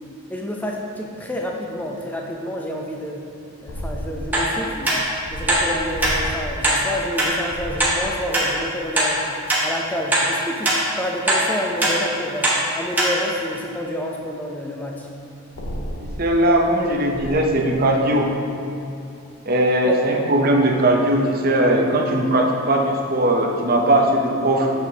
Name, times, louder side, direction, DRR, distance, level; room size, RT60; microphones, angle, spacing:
voice 1, 0.3-3.2 3.6-4.9 5.3-9.2 9.6-15.1 19.8-20.0, equal, 5° left, 0 dB, 0.5 m, -29 dB
sound 1, 3.7-8.7 15.5-17.3, equal, 65° left, 0.7 m, -33 dB
sound 2, 4.3-4.5 4.8-5.0 5.5-5.6 6.0-6.1 6.6-6.8 7.2-7.3 7.8-7.9 8.3-8.5 9.0-9.1 9.5-9.6 10.1-10.3 10.6-10.8 11.3-11.4 11.8-11.9 12.4-12.6 13.0-13.1 13.6-13.7, right 1 dB, 10° right, 0.8 m, -19 dB
voice 2, 16.0-18.4 19.5-24.7, right 1 dB, 40° right, 1 dB, 0.6 m, -19 dB
7.1 x 6.1 x 2.8 m, 2.7 s
head